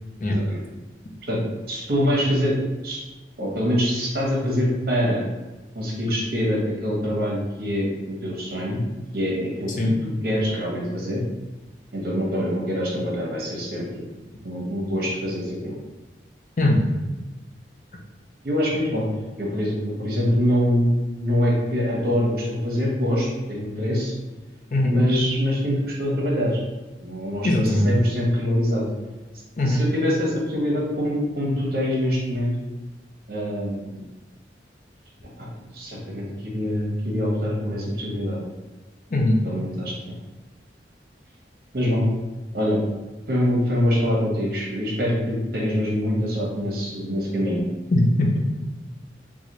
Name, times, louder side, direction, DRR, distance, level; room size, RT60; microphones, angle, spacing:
voice 1, 0.3-0.6 1.3-1.4 1.7-3.0 3.4-5.2 5.7-8.8 9.1-9.7 10.0-11.2 11.9-14.0 14.4-15.7 18.4-19.1 19.4-24.1 24.9-26.6 27.0-28.9 29.6-32.5 33.3-34.0 35.4-38.4 39.4-39.9 41.7-42.1 42.5-42.8 43.3-47.6, equal, 55° right, -3 dB, 1.0 m, -24 dB
voice 2, 16.6-16.9 24.7-25.0 27.4-27.9 29.6-29.8 39.1-39.4 47.9-48.5, left 1 dB, 45° left, 0 dB, 0.5 m, -20 dB
4.0 x 2.3 x 3.0 m, 1.2 s
head